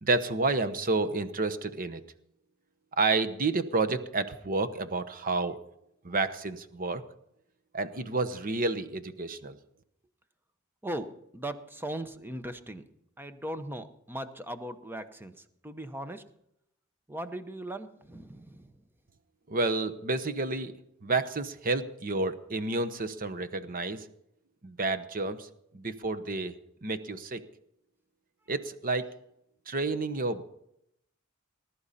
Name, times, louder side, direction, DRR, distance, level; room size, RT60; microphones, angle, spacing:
voice 1, 0.0-2.0 3.0-5.6 6.0-7.0 7.7-9.6 19.5-20.7 21.0-24.1 24.6-25.5 25.7-26.5 26.8-27.4 28.5-29.1 29.7-30.4, right 3 dB, 45° right, 11 dB, 1.0 m, -30 dB
voice 2, 10.8-12.8 13.2-16.2 17.1-18.8, right 1 dB, 10° right, 9 dB, 0.9 m, -39 dB
20.0 x 11.5 x 4.2 m, 0.77 s
head